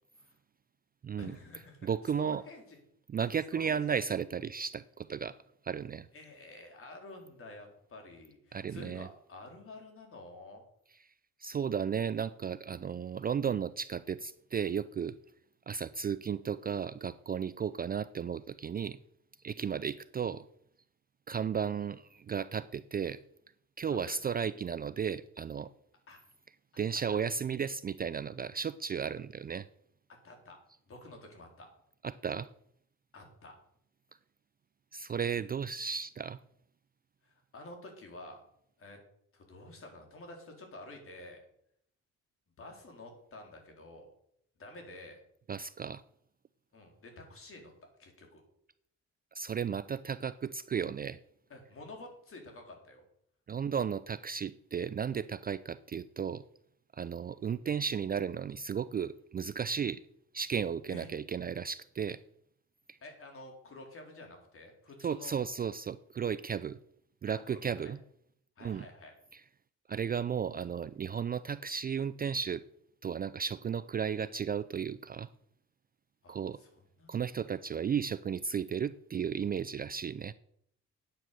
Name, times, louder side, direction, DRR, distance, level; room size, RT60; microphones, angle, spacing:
voice 1, 1.2-1.9 2.2-2.8 3.1-3.8 6.1-10.6 23.9-24.4 26.1-26.2 26.7-26.8 27.1-27.2 30.2-30.6 30.9-31.7 33.1-33.6 37.2-38.4 38.8-39.0 39.3-41.4 42.6-44.1 44.6-45.2 46.7-47.7 48.0-48.4 51.5-53.0 60.9-61.1 63.0-65.4 67.3-67.9 68.6-69.1 76.2-77.3, left 2 dB, 45° left, 4.0 m, -50 dB
voice 2, 1.8-2.4 3.1-5.4 5.6-6.1 8.5-9.1 11.4-15.2 15.7-19.0 19.4-20.5 21.3-23.2 23.8-25.7 26.8-29.7 32.0-32.5 34.9-36.4 45.5-46.0 49.3-51.2 53.5-56.4 56.9-60.0 60.3-62.2 62.9-63.0 65.0-66.8 67.2-68.0 68.6-68.9 69.3-69.4 69.9-72.6 73.0-75.3 76.3-76.6 77.1-80.3, right 7 dB, 30° right, 0.4 m, -34 dB
9.1 x 9.1 x 6.9 m
cardioid pair, 90°, 30 cm